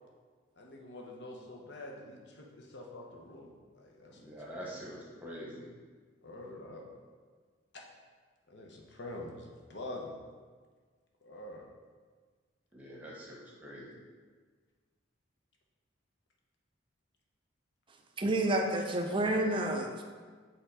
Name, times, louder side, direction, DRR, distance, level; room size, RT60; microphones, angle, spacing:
voice 1, 0.6-4.8 6.2-6.9 7.7-7.8 8.5-10.2 11.2-11.7 19.0-19.3, left 1 dB, 55° left, 0 dB, 0.9 m, -46 dB
voice 2, 4.1-5.7 12.7-14.0, equal, 10° right, -5 dB, 1.0 m, -45 dB
voice 3, 18.2-20.0, right 1 dB, 25° right, 3 dB, 0.5 m, -29 dB
5.4 x 3.6 x 4.8 m, 1.5 s
head